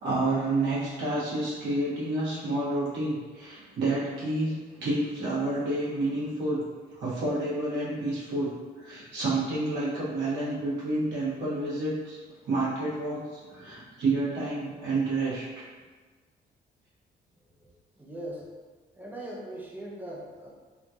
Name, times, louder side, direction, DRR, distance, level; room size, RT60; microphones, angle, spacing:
voice 1, 0.0-6.6 6.9-8.5 8.8-12.2 12.4-15.6, right 2 dB, 85° right, -9 dB, 1.5 m, -29 dB
voice 2, 17.6-18.5 19.0-20.5, right 1 dB, 10° right, -3 dB, 0.5 m, -40 dB
3.5 x 2.8 x 2.5 m, 1.4 s
cardioid pair, 160°, 18 cm